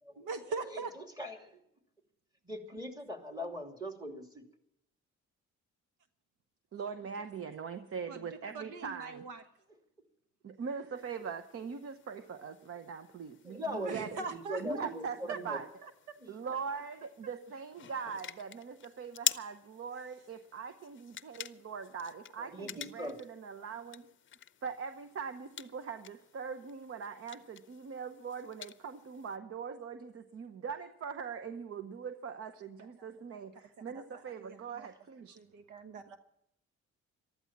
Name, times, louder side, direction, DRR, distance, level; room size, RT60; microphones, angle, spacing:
voice 1, 0.2-0.9 7.2-7.3 8.1-9.4 13.8-14.9 15.3-15.9 32.8-33.1 33.9-34.9 35.2-36.2, right 4 dB, 90° right, 9 dB, 1.3 m, -42 dB
voice 2, 0.7-1.6 2.4-4.5 13.4-15.6 16.2-16.3 22.4-23.2, equal, 15° right, 4 dB, 2.8 m, -41 dB
voice 3, 6.7-9.2 10.4-14.2 14.6-15.7 16.3-24.1 24.6-35.3, right 6 dB, 50° right, 10 dB, 0.9 m, -42 dB
sound 1, 10.9-29.4, left 9 dB, 40° left, 0.6 m, -46 dB
14.5 x 12.5 x 7.3 m, 0.77 s
cardioid pair, 90°, 30 cm